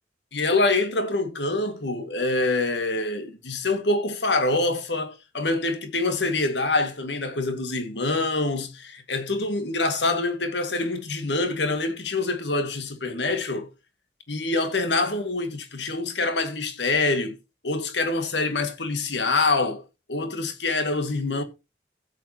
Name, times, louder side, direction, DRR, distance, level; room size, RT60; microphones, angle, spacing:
voice 1, 0.3-13.7 14.3-17.3 17.6-19.8 20.1-21.4, left 2 dB, 80° left, 2.0 m, -25 dB
16.0 x 8.2 x 2.9 m
head